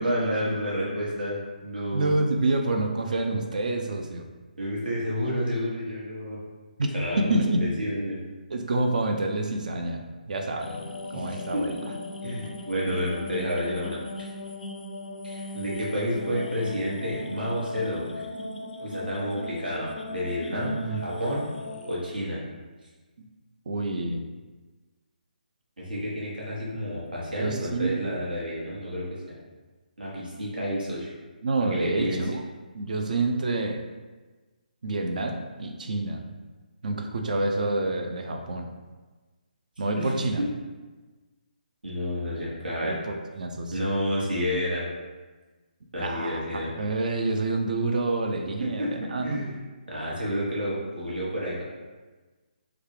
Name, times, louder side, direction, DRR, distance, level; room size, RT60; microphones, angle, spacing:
voice 1, 0.0-2.1 4.6-6.4 6.9-8.2 11.1-11.6 12.2-14.3 15.2-18.1 18.8-21.5 21.9-22.4 25.8-29.1 30.0-31.1 31.7-32.3 40.0-40.1 41.8-42.9 43.7-44.8 45.9-46.7 48.6-48.9 49.2-49.5 49.9-51.6, equal, 80° right, -6 dB, 1.3 m, -30 dB
voice 2, 1.9-4.2 6.8-7.9 8.5-10.0 10.3-10.7 11.1-11.7 20.6-21.0 23.7-24.2 27.4-28.0 31.4-32.4 32.7-33.8 34.8-36.2 36.8-38.7 39.8-40.4 42.8-43.7 46.0-46.4 46.8-49.4, right 2 dB, 60° right, 4 dB, 0.4 m, -27 dB
sound 1, 10.6-22.0, left 2 dB, 75° left, 0.4 m, -37 dB
3.2 x 2.4 x 3.2 m, 1.3 s
figure-of-eight pair, 145°, 5 cm